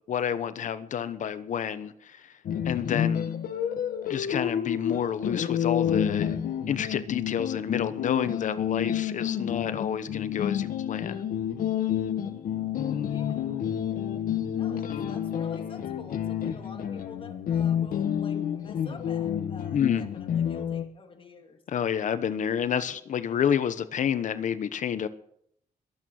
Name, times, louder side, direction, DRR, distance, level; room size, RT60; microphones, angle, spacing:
voice 1, 0.1-2.3 2.6-3.3 4.1-6.3 6.7-11.2 19.7-20.0 21.7-25.1, left 8 dB, 60° left, 13 dB, 1.0 m, -29 dB
sound 1, 2.5-20.8, left 9 dB, 75° left, 1.4 m, -29 dB
voice 2, 13.0-13.6 14.6-21.6, left 4 dB, 40° left, 4 dB, 2.7 m, -48 dB
22.0 x 8.7 x 6.5 m, 0.70 s
wide cardioid pair, 140°, 14 cm